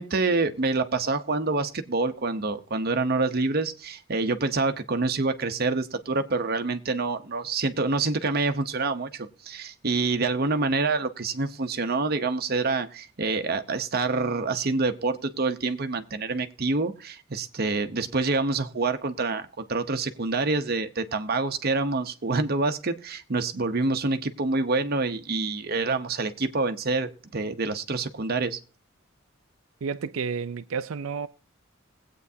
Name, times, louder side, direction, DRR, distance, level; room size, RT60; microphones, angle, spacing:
voice 1, 0.0-28.6, right 3 dB, 50° right, 0.8 m, -27 dB
voice 2, 29.8-31.3, right 5 dB, 90° right, 0.5 m, -31 dB
20.5 x 8.4 x 2.7 m
head